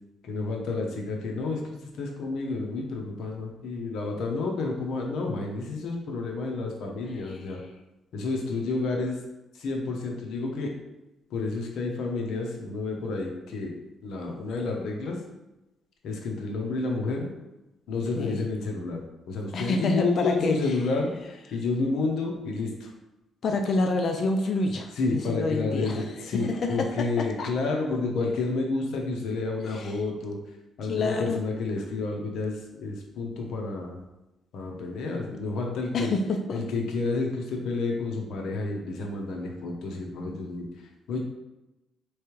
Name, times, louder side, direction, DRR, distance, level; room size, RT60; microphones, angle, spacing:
voice 1, 0.2-7.6 8.1-9.2 9.5-10.7 11.3-13.7 14.0-15.2 16.0-17.3 17.9-19.0 19.3-22.9 24.9-30.4 30.8-34.0 34.5-36.1 36.5-40.7 41.1-41.2, left 3 dB, 75° left, 1 dB, 0.8 m, -30 dB
voice 2, 19.5-20.6 23.4-26.0 26.3-27.1 27.4-27.5 29.7-30.0 30.9-31.4 35.9-36.6, left 3 dB, 55° left, 5 dB, 0.4 m, -27 dB
3.4 x 3.2 x 3.1 m, 0.97 s
cardioid pair, 90°, 0 cm